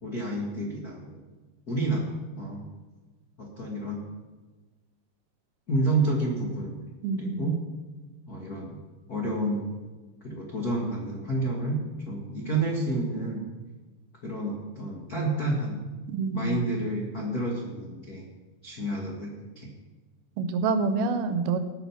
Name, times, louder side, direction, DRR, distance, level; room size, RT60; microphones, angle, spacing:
voice 1, 0.0-1.2 1.7-2.0 2.4-2.7 3.4-4.1 5.7-6.8 7.2-7.5 8.3-8.8 9.1-9.7 10.2-13.4 14.2-15.8 16.3-18.3 18.6-19.7, right 2 dB, 75° left, -2 dB, 0.8 m, -29 dB
voice 2, 7.0-7.6 16.1-16.7 20.4-21.6, right 4 dB, 80° right, 10 dB, 2.6 m, -27 dB
19.0 x 6.6 x 5.7 m, 1.3 s
omnidirectional pair, 4.6 m